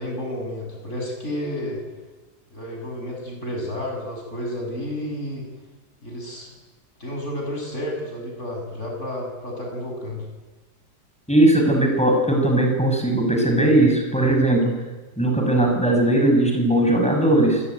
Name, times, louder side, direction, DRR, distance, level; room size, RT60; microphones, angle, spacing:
voice 1, 0.0-1.8 2.5-5.5 6.0-6.5 7.0-10.3, left 1 dB, 45° left, 1 dB, 7.7 m, -31 dB
voice 2, 11.3-14.7 15.2-17.6, right 1 dB, 5° left, 2 dB, 6.1 m, -18 dB
28.0 x 19.5 x 9.5 m, 1.2 s
omnidirectional pair, 1.8 m